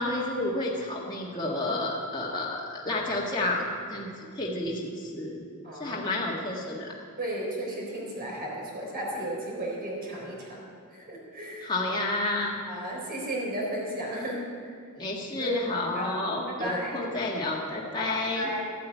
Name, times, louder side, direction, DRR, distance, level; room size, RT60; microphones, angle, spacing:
voice 1, 0.0-3.6 3.9-4.1 4.3-5.4 5.8-6.9 11.6-12.6 15.0-18.5, left 2 dB, 20° left, -4 dB, 1.7 m, -30 dB
voice 2, 5.6-6.0 7.2-10.6 10.9-11.7 12.6-14.5 15.4-15.6 15.9-16.2 16.5-17.1 17.9-18.1 18.3-18.7, right 1 dB, 40° right, -3 dB, 3.9 m, -34 dB
13.5 x 8.9 x 9.0 m, 2.2 s
head